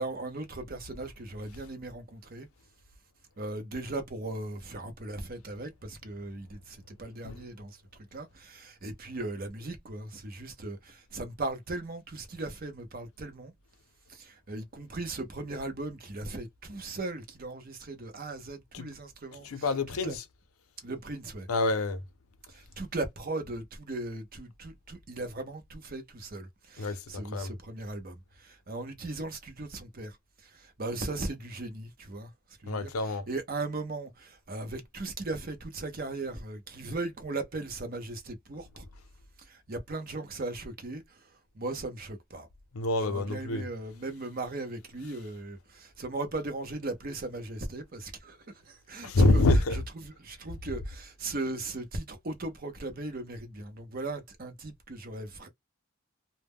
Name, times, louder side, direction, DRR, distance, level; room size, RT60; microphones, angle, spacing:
voice 1, 0.0-2.5 3.4-7.8 8.1-13.5 14.1-19.6 20.0-20.2 20.8-21.5 22.5-30.2 30.4-32.3 32.6-32.9 33.3-38.9 39.4-41.2 41.5-42.5 43.0-49.4 49.7-55.5, right 2 dB, 45° right, 0.6 m, -38 dB
voice 2, 19.4-20.2 21.5-22.0 26.8-27.5 32.7-33.3 42.7-43.7 49.0-49.8, left 2 dB, 90° left, 0.6 m, -26 dB
2.1 x 2.1 x 3.4 m
head